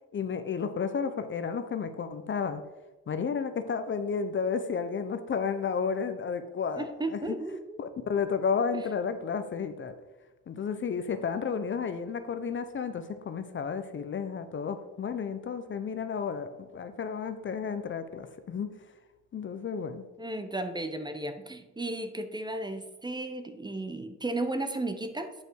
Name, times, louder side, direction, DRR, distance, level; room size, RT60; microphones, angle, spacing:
voice 1, 0.1-2.6 3.1-6.9 7.1-7.2 7.8-9.9 10.5-18.7 19.3-20.0, left 6 dB, 40° left, 10 dB, 0.7 m, -32 dB
voice 2, 6.8-7.8 20.2-25.3, right 2 dB, 15° right, 7 dB, 0.8 m, -34 dB
8.5 x 5.4 x 4.6 m, 1.1 s
cardioid pair, 90°, 30 cm